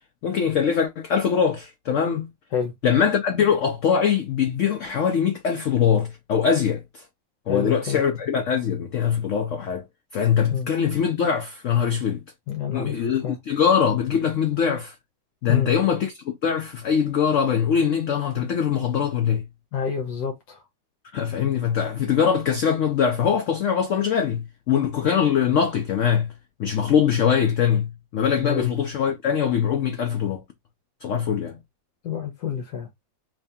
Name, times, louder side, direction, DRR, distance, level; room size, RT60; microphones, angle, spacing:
voice 1, 0.2-2.3 2.8-7.0 7.5-9.8 10.1-12.2 12.7-14.9 15.4-19.5 21.1-26.3 26.6-30.4 31.0-31.6, left 7 dB, 90° left, 0.6 m, -22 dB
voice 2, 7.5-8.0 10.5-10.7 12.5-13.4 15.5-15.7 19.7-20.6 28.4-28.7 32.0-32.9, left 7 dB, 70° left, 1.3 m, -28 dB
3.1 x 2.7 x 3.4 m
omnidirectional pair, 2.0 m